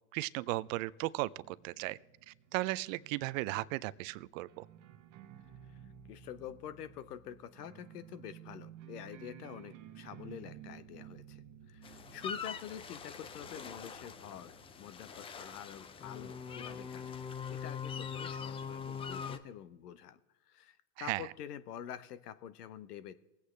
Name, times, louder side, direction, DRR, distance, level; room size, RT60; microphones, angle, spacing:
voice 1, 0.1-2.0 2.3-4.7 21.0-21.3, right 19 dB, 55° right, 18 dB, 0.5 m, -36 dB
sound 1, 1.4-16.7, right 10 dB, 40° right, 1.0 m, -55 dB
voice 2, 6.1-11.4 11.7-20.2 20.5-23.1, left 9 dB, 80° left, 14 dB, 1.0 m, -47 dB
sound 2, 11.8-19.4, left 6 dB, 15° left, 0.4 m, -43 dB
20.5 x 8.3 x 3.3 m, 1.0 s
hypercardioid pair, 110°, 46 cm